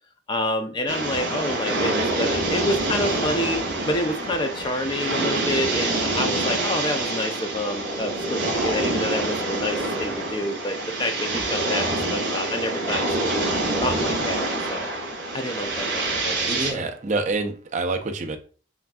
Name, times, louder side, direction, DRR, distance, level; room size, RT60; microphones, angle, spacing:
voice 1, 0.3-3.6 3.8-13.5 13.8-14.9 15.3-16.9, left 1 dB, 25° left, 6 dB, 0.4 m, -28 dB
sound 1, 0.9-16.7, right 2 dB, 70° right, 1.8 m, -26 dB
voice 2, 16.5-18.4, right 3 dB, 40° right, 5 dB, 0.5 m, -27 dB
5.6 x 2.6 x 2.3 m, 0.39 s
head